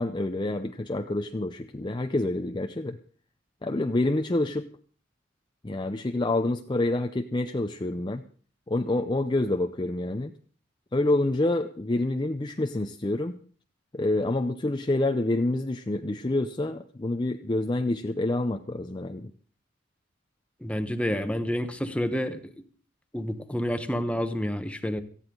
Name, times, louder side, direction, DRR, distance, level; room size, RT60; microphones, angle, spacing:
voice 1, 0.0-3.0 3.6-4.7 5.6-8.2 8.7-10.3 10.9-13.4 13.9-19.3, left 2 dB, 25° left, 6 dB, 0.5 m, -27 dB
voice 2, 20.6-22.4 23.1-25.0, equal, 5° left, 8 dB, 1.0 m, -29 dB
18.0 x 14.0 x 3.8 m, 0.44 s
head